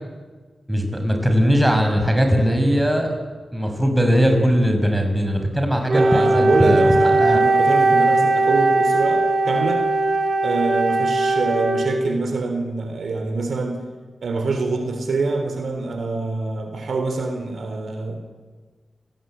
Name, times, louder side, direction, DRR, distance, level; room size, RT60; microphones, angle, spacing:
voice 1, 0.7-3.1 3.5-7.4, equal, 10° right, 4 dB, 6.6 m, -19 dB
Wind instrument woodwind instrument, 5.9-12.3, right 2 dB, 50° right, 2.8 m, -19 dB
voice 2, 5.9-9.8 10.4-13.8 14.2-18.2, right 3 dB, 75° right, 6 dB, 3.6 m, -25 dB
30.0 x 18.5 x 9.0 m, 1.4 s
cardioid pair, 55°, 0 cm